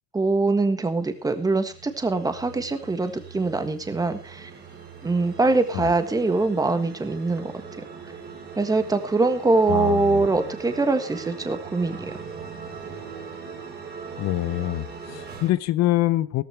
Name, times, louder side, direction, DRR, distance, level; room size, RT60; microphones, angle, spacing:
voice 1, 0.1-4.5 5.0-7.5 8.6-12.1, right 3 dB, 10° right, 9 dB, 1.5 m, -23 dB
sound 1, 0.9-15.5, right 6 dB, 25° right, 3.8 m, -40 dB
voice 2, 9.7-10.3 14.2-16.4, left 15 dB, 45° left, 17 dB, 0.8 m, -25 dB
16.5 x 14.5 x 3.4 m, 0.30 s
cardioid pair, 155°, 39 cm